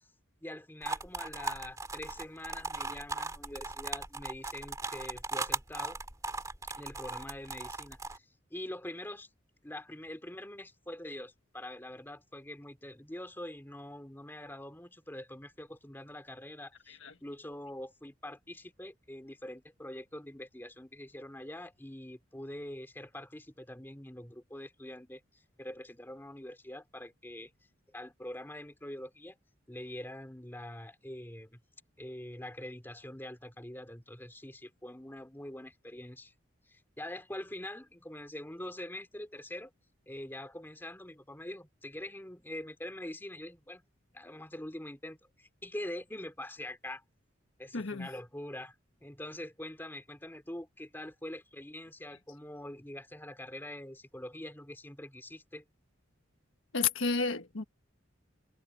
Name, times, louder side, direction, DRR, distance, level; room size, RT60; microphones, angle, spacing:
voice 1, 0.4-6.0 6.8-8.2 8.5-9.3 9.6-27.5 27.9-29.4 29.7-31.6 32.0-36.3 36.7-39.7 40.1-43.8 44.1-47.0 47.6-48.7 49.0-55.6, left 1 dB, 10° left, 2.7 m, -44 dB
sound 1, 0.8-8.2, right 3 dB, 15° right, 2.1 m, -38 dB
voice 2, 47.7-48.1 56.7-57.6, left 4 dB, 75° left, 1.5 m, -31 dB
head